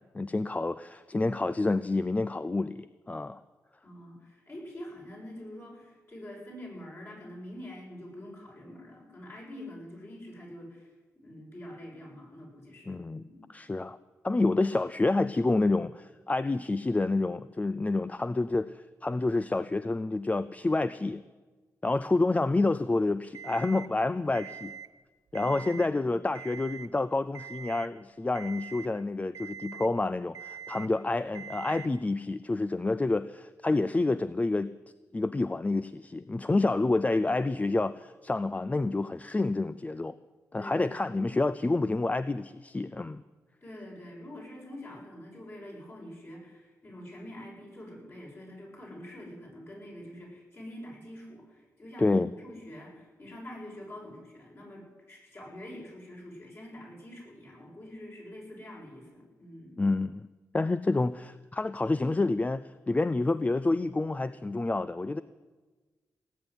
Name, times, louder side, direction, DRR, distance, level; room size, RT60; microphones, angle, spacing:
voice 1, 0.0-3.4 12.9-13.2 13.5-14.0 14.2-21.2 21.8-24.7 25.3-34.7 35.1-40.2 40.5-43.2 52.0-52.3 59.8-60.3 60.5-65.2, left 2 dB, 25° left, 15 dB, 0.5 m, -28 dB
voice 2, 3.8-10.9 11.2-13.5 25.4-26.2 40.6-41.3 43.6-59.8, left 1 dB, 40° left, -2 dB, 7.3 m, -46 dB
Alarm, 23.3-23.9 24.3-24.9 25.3-25.9 26.3-26.9 27.3-27.9 28.3-28.9 29.3-29.9 30.3-30.9 31.3-31.9, right 7 dB, 65° right, 0.7 m, -43 dB
18.0 x 8.2 x 9.7 m, 1.3 s
cardioid pair, 70°, 6 cm